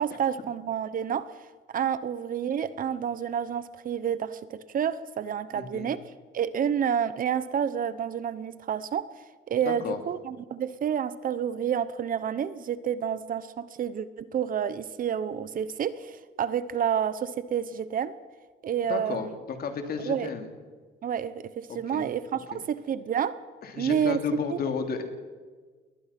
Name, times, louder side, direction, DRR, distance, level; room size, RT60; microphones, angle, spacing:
voice 1, 0.0-1.4 1.7-6.0 6.3-9.1 9.5-18.1 18.6-19.4 20.0-20.3 21.0-23.4 23.8-24.2 24.5-24.6, right 8 dB, 45° right, 15 dB, 0.9 m, -29 dB
voice 2, 5.5-5.9 9.6-10.0 18.9-20.5 21.7-22.1 22.5-22.6 23.6-25.0, left 6 dB, 50° left, 6 dB, 3.0 m, -33 dB
21.5 x 20.0 x 6.0 m, 1.4 s
cardioid pair, 145°, 20 cm